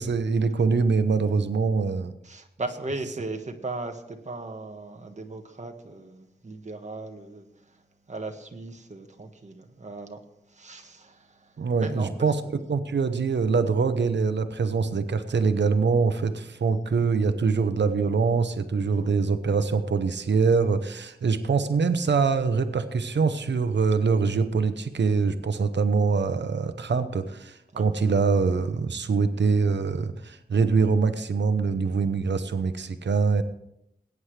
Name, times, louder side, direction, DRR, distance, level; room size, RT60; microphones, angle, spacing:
voice 1, 0.0-2.1 11.6-12.4 12.7-33.4, right 5 dB, 85° right, 0.9 m, -24 dB
voice 2, 2.2-10.2 10.5-12.5 18.8-19.1 27.7-27.8, right 2 dB, 40° right, 1.4 m, -38 dB
20.5 x 9.5 x 3.3 m
wide cardioid pair, 100°, 18 cm